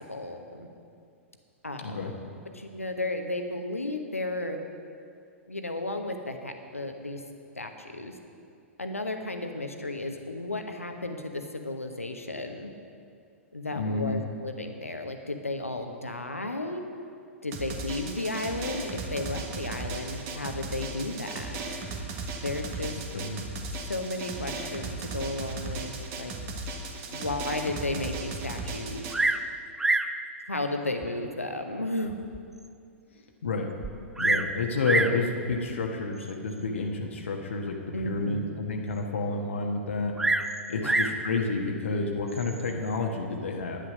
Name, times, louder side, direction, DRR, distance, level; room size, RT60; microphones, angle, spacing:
voice 1, 0.1-0.7 1.6-2.1 2.5-4.6 5.5-7.2 7.6-8.2 8.8-12.7 13.5-16.8 17.4-21.6 22.4-22.9 23.7-26.3 27.1-29.1 30.5-32.3 37.9-38.5 40.7-41.0, left 2 dB, 85° left, 5 dB, 1.2 m, -34 dB
voice 2, 13.8-14.2 23.1-23.4 33.4-33.7 34.1-37.8 38.0-40.1 40.7-43.8, left 3 dB, 65° left, 2 dB, 1.3 m, -30 dB
Drum, 17.5-29.1, right 3 dB, 35° right, 1.5 m, -36 dB
Bird vocalization bird call bird song, 29.1-29.5 29.8-30.2 31.0-31.1 31.7-31.8 32.3-32.4 32.6-32.7 33.8-34.5 34.8-35.2 36.2-36.5 40.2-41.2 42.3-42.7, right 2 dB, 5° right, 0.4 m, -26 dB
10.0 x 10.0 x 6.3 m, 2.4 s
figure-of-eight pair, 105°, 7 cm